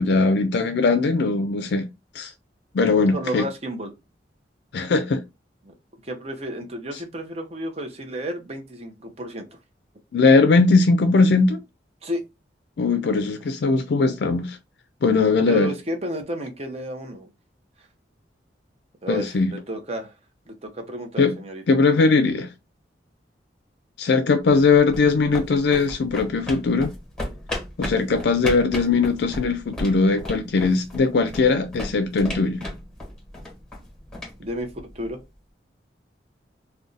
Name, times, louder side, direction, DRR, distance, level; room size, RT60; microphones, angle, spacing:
voice 1, 0.0-1.9 2.1-2.3 2.7-3.5 4.7-5.2 10.1-11.6 12.8-14.6 15.0-15.7 19.1-19.5 21.2-21.4 21.7-22.5 24.0-26.9 27.8-32.6, left 4 dB, 65° left, 0.4 m, -20 dB
voice 2, 3.1-3.9 5.6-5.7 6.0-9.6 12.0-12.2 15.5-17.3 17.8-17.9 19.0-20.1 20.5-21.6 34.4-35.2, right 1 dB, 35° right, 0.7 m, -32 dB
sound 1, 24.6-35.3, left 1 dB, 5° left, 1.2 m, -36 dB
2.5 x 2.2 x 3.8 m
head